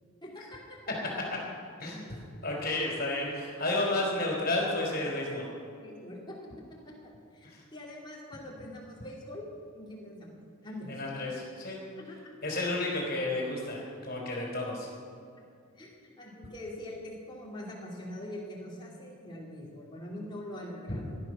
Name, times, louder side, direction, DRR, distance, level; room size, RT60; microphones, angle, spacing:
voice 1, 0.2-1.1 5.8-6.4 6.8-10.4 10.6-11.0 12.1-12.2 15.7-21.2, left 1 dB, 20° left, -4 dB, 3.2 m, -43 dB
voice 2, 2.4-5.5 7.4-7.6 10.9-11.8 12.4-14.9, left 2 dB, 45° left, -1 dB, 4.1 m, -31 dB
17.0 x 11.5 x 6.4 m, 2.4 s
head